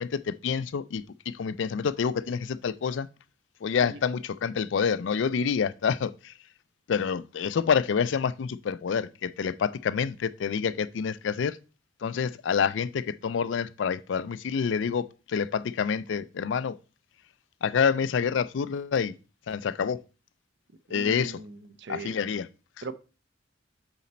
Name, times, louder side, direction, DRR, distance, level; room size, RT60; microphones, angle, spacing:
voice 1, 0.0-3.1 3.6-6.3 6.9-11.6 12.0-16.8 17.6-19.2 19.5-20.0 20.9-21.4 21.9-22.5, left 6 dB, 65° left, 0.4 m, -27 dB
voice 2, 20.9-22.1 22.8-22.9, right 3 dB, 60° right, 0.6 m, -39 dB
7.9 x 4.2 x 4.2 m
head